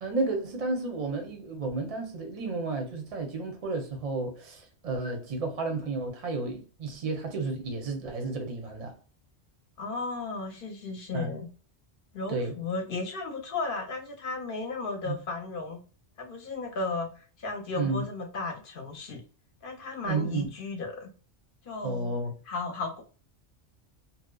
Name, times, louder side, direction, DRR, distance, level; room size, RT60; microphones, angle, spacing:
voice 1, 0.0-8.9 11.1-11.3 12.3-12.5 15.1-15.2 17.8-18.0 20.0-20.5 21.8-22.3, right 3 dB, 40° right, 0.6 m, -32 dB
voice 2, 9.8-11.5 12.1-15.8 16.2-19.2 19.6-21.1 21.7-22.1 22.5-23.0, left 3 dB, 55° left, 0.8 m, -34 dB
2.6 x 2.1 x 2.2 m
omnidirectional pair, 1.2 m